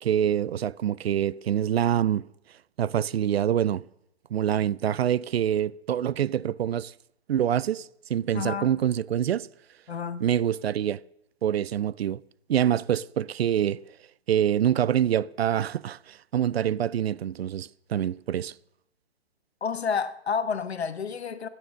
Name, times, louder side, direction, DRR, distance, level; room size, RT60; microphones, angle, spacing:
voice 1, 0.0-2.3 2.8-3.8 4.3-6.9 7.3-9.5 10.2-11.0 11.4-12.2 12.5-13.8 14.3-18.5, right 10 dB, 75° right, 0.5 m, -25 dB
voice 2, 8.3-8.7 9.9-10.3 19.6-21.5, left 6 dB, 85° left, 1.2 m, -30 dB
14.5 x 9.3 x 6.3 m
hypercardioid pair, 145°, 31 cm